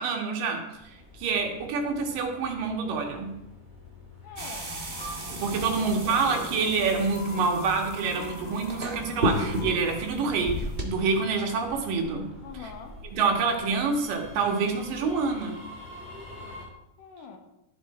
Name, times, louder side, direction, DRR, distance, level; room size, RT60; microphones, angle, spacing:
voice 1, 0.0-3.4 5.4-12.3 12.5-12.7 13.1-15.6, right 4 dB, 75° right, 3 dB, 3.3 m, -27 dB
sound 1, 0.7-16.7, left 2 dB, 5° right, 3.2 m, -47 dB
voice 2, 4.2-4.8 5.4-6.3 12.4-13.0 17.0-17.4, left 5 dB, 70° left, 3 dB, 2.9 m, -44 dB
sound 2, 4.4-10.9, equal, 45° right, 0.7 m, -33 dB
sound 3, 4.9-10.1, left 1 dB, 40° left, 2.0 m, -43 dB
12.5 x 11.0 x 4.3 m, 0.92 s
omnidirectional pair, 4.0 m